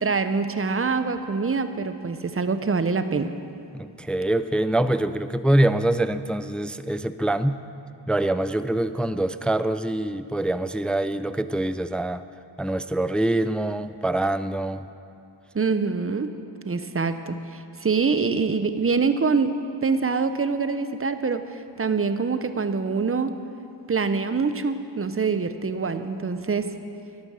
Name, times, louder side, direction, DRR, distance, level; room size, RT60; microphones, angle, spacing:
voice 1, 0.0-3.3 15.5-16.3 16.6-19.5 19.8-23.3 23.9-26.7, right 4 dB, 30° right, 10 dB, 0.7 m, -25 dB
voice 2, 3.7-7.6 8.1-12.2 12.6-14.8, right 1 dB, 5° left, 12 dB, 0.3 m, -24 dB
12.0 x 9.6 x 6.3 m, 2.6 s
cardioid pair, 55°, 44 cm